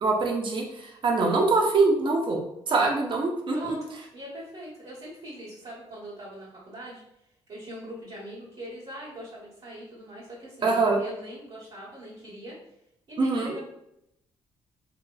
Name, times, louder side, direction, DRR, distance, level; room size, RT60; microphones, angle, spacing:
voice 1, 0.0-2.4 2.7-3.8 10.6-11.0 13.2-13.5, right 3 dB, 45° right, 1 dB, 0.8 m, -24 dB
voice 2, 3.5-3.8 4.1-12.6 13.1-13.6, equal, 60° right, -11 dB, 1.4 m, -42 dB
3.0 x 2.9 x 2.3 m, 0.79 s
supercardioid pair, 60°, 11 cm